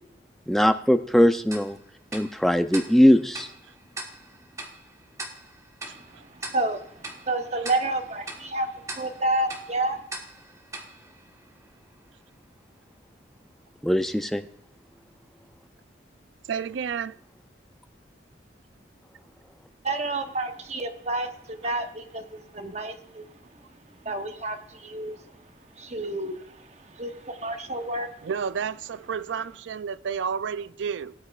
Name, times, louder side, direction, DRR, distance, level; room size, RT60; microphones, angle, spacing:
voice 1, 0.5-1.8 2.1-3.5 13.8-14.4, equal, ahead, 0.4 m, -20 dB
Tick-tock, 1.5-12.0, right 2 dB, 15° right, 1.1 m, -42 dB
voice 2, 6.3-10.0 19.8-22.2 22.5-23.3 24.0-25.2 25.8-28.3, right 2 dB, 35° right, 0.9 m, -30 dB
voice 3, 16.5-17.2 28.2-31.1, right 6 dB, 80° right, 0.4 m, -30 dB
17.5 x 8.9 x 2.4 m
head